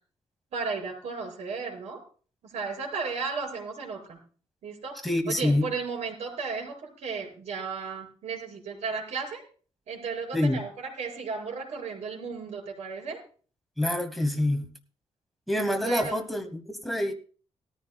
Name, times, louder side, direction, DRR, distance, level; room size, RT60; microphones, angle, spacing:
voice 1, 0.5-2.0 2.4-4.2 4.6-5.0 5.3-9.4 9.9-13.2 15.8-16.2, right 5 dB, 75° right, 4.9 m, -34 dB
voice 2, 5.0-5.6 10.3-10.6 13.8-14.7 15.5-17.1, left 1 dB, ahead, 1.0 m, -26 dB
18.0 x 13.5 x 2.2 m
wide cardioid pair, 175°, 11 cm